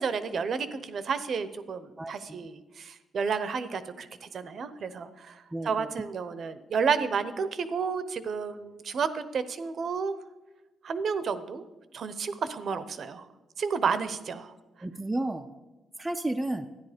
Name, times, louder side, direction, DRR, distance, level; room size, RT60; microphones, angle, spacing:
voice 1, 0.0-5.4 5.6-10.2 10.8-11.6 11.9-13.3 13.6-14.5, right 5 dB, 45° right, 13 dB, 0.7 m, -31 dB
voice 2, 2.0-2.4 5.5-5.9 14.8-15.5 16.0-16.7, right 1 dB, 10° right, 5 dB, 0.4 m, -32 dB
13.0 x 10.0 x 5.0 m, 1.1 s
cardioid pair, 160°, 0 cm